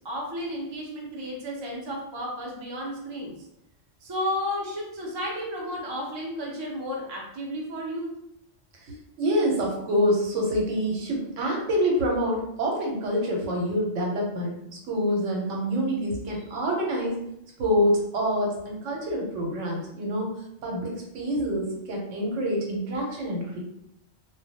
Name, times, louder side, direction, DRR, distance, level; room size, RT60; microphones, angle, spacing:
voice 1, 0.0-3.3 4.0-8.2, equal, 45° right, -2 dB, 0.3 m, -33 dB
voice 2, 8.9-14.6 14.9-17.2 17.6-20.3 20.6-23.6, equal, 75° right, -1 dB, 1.0 m, -26 dB
2.2 x 2.1 x 2.7 m, 0.79 s
omnidirectional pair, 1.3 m